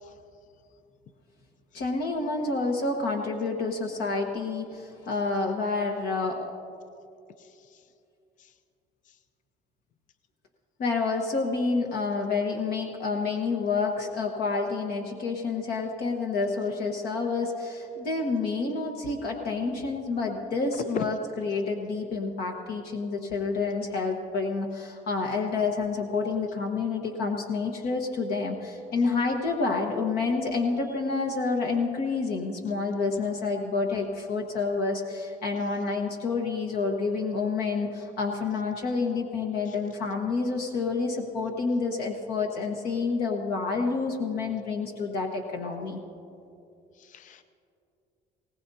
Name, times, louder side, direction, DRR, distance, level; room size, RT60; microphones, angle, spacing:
voice 1, 1.7-6.5 10.8-46.0, left 4 dB, 65° left, 2 dB, 1.3 m, -29 dB
voice 2, 7.4-7.8 8.4-8.5 20.9-21.0 39.7-39.8 47.0-47.4, left 7 dB, 50° left, 10 dB, 0.6 m, -38 dB
20.0 x 18.5 x 2.8 m, 2.7 s
cardioid pair, 110°, 17 cm